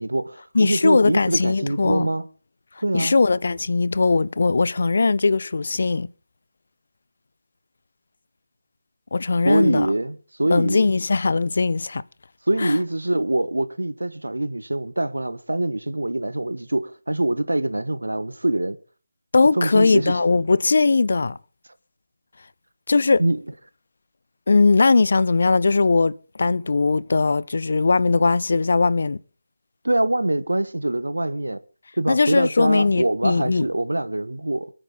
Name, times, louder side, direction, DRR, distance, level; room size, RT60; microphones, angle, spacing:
voice 1, 0.0-2.2 2.8-3.1 9.4-10.9 12.5-18.8 19.5-20.2 23.2-23.4 29.8-31.6 32.0-34.7, right 1 dB, 75° right, 1.2 m, -24 dB
voice 2, 0.5-2.1 2.9-6.1 9.1-9.9 10.5-12.0 12.6-12.8 19.3-21.4 22.9-23.2 24.5-29.2 32.1-33.7, left 3 dB, 50° left, 0.6 m, -19 dB
25.0 x 8.8 x 3.8 m
figure-of-eight pair, 155°, 0 cm